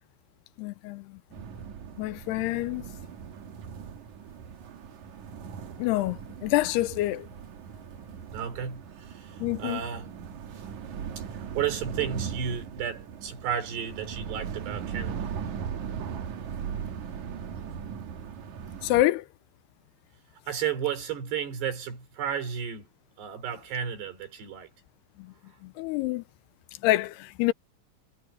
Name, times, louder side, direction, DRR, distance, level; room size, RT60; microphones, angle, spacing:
voice 1, 0.6-1.4 2.0-2.9 5.8-7.3 9.4-9.8 18.8-19.3 25.2-25.3 25.6-26.2 26.8-27.5, left 17 dB, 80° left, 2.7 m, -27 dB
sound 1, 1.3-19.0, right 7 dB, 60° right, 2.4 m, -39 dB
voice 2, 8.3-10.1 10.5-10.7 11.2-15.3 20.5-22.9 23.2-24.7, right 8 dB, 80° right, 6.0 m, -33 dB
omnidirectional pair, 4.7 m